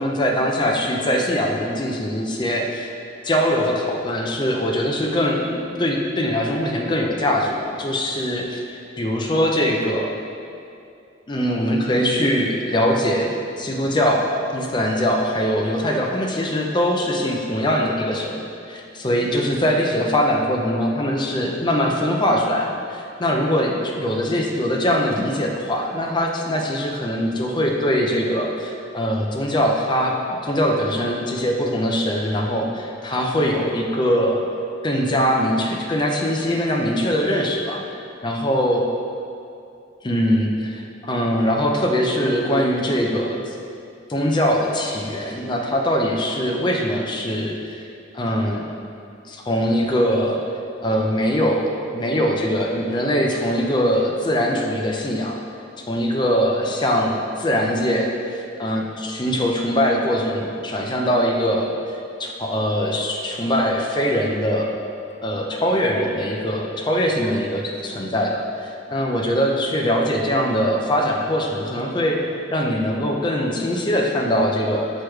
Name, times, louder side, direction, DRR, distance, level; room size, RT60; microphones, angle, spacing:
voice 1, 0.0-2.9 3.2-10.2 11.3-30.1 30.4-34.4 34.8-37.8 38.2-38.8 40.0-43.5 44.1-47.8 48.1-48.6 49.3-50.4 50.8-55.3 55.9-61.8 62.2-64.8 65.2-72.2 72.5-74.9, equal, 25° left, 0 dB, 0.5 m, -22 dB
6.5 x 3.1 x 4.7 m, 2.5 s
head